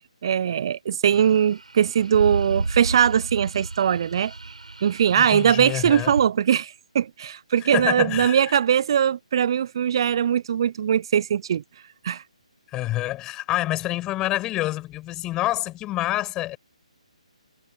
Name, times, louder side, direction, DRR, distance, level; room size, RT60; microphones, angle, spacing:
voice 1, 0.2-4.5 4.8-11.6 12.0-12.2, right 8 dB, 40° right, 0.7 m, -21 dB
sound 1, 1.1-6.3, right 3 dB, 75° right, 4.3 m, -33 dB
voice 2, 5.2-6.1 7.7-8.4 12.7-16.6, left 16 dB, 15° left, 7.0 m, -27 dB
figure-of-eight pair, 140°, 4 cm